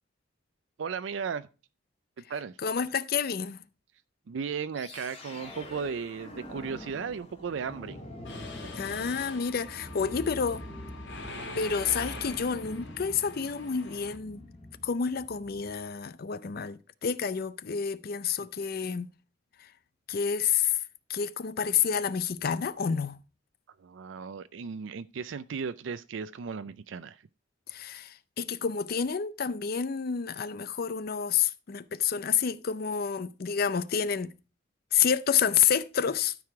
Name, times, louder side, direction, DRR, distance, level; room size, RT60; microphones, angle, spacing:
voice 1, 0.8-1.5 2.3-2.6 4.3-8.0 23.8-27.2, right 6 dB, 90° right, 0.4 m, -35 dB
voice 2, 2.6-3.6 8.8-10.7 11.6-14.4 14.8-19.1 19.6-19.7 20.1-20.8 21.1-23.2 27.7-34.3 34.9-36.3, left 7 dB, 55° left, 0.5 m, -29 dB
sound 1, 4.7-15.8, left 1 dB, 35° left, 2.3 m, -46 dB
Mechanisms, 8.2-14.2, left 2 dB, 85° left, 2.8 m, -43 dB
13.0 x 4.8 x 4.7 m
head